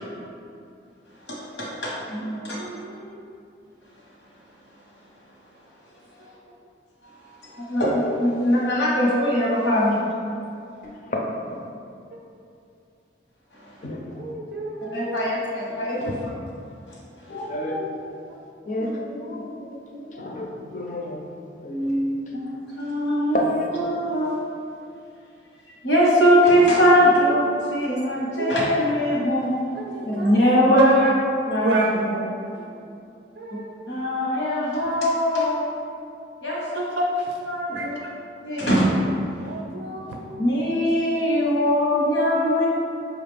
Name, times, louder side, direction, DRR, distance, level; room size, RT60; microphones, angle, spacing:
voice 1, 1.3-2.6 7.5-10.0 14.9-16.3 22.3-23.4 23.7-24.3 25.8-29.5 30.0-31.0 31.4-32.1 33.9-35.6 36.4-36.9 37.5-38.0 38.4-38.9 40.4-42.7, equal, 85° left, -5 dB, 1.1 m, -21 dB
voice 2, 2.2-3.2 14.1-15.4 27.3-27.4 28.4-28.5 29.7-30.4 30.8-31.1 31.6-32.0 32.6-32.7 33.4-33.7 35.7-35.8 36.7-37.3 37.7-37.9 39.4-40.2, right 1 dB, 70° right, -1 dB, 0.4 m, -28 dB
voice 3, 10.8-11.2 13.8-14.2 17.3-18.0 18.7-21.2 21.6-22.1 23.3-23.9, left 1 dB, 45° left, 0 dB, 0.5 m, -29 dB
5.5 x 2.4 x 3.4 m, 2.5 s
head